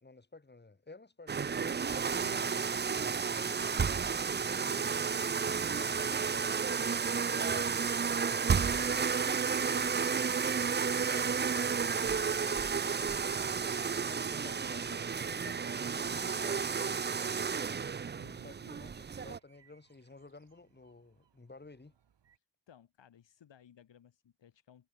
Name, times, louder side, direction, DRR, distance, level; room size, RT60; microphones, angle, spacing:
voice 1, 0.0-2.0 3.0-3.9 4.5-10.2 10.7-13.3 13.9-17.8 18.2-21.9, left 3 dB, 20° left, 3.8 m, -54 dB
sound 1, 1.3-19.4, right 6 dB, 25° right, 0.6 m, -32 dB
voice 2, 2.2-2.5 13.9-14.5 18.2-18.5 22.7-24.9, left 9 dB, 70° left, 7.9 m, -59 dB
sound 2, 16.6-22.4, right 8 dB, 65° right, 7.5 m, -71 dB
cardioid pair, 65°, 44 cm